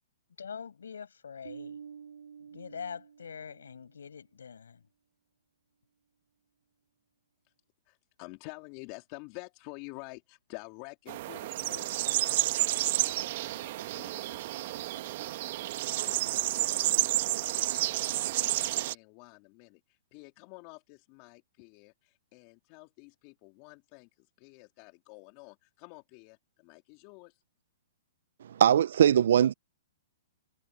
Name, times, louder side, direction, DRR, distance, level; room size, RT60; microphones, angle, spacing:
voice 1, 0.4-1.8 2.4-4.8, left 6 dB, 85° left, 7.8 m, -44 dB
Bass guitar, 1.4-3.9, right 7 dB, 90° right, 2.8 m, -48 dB
voice 2, 7.8-27.4, left 28 dB, 40° left, 3.1 m, -50 dB
sound 1, 11.1-18.9, right 16 dB, 50° right, 1.4 m, -30 dB
voice 3, 28.4-29.5, right 9 dB, 70° right, 0.4 m, -21 dB
hypercardioid pair, 135°, 0 cm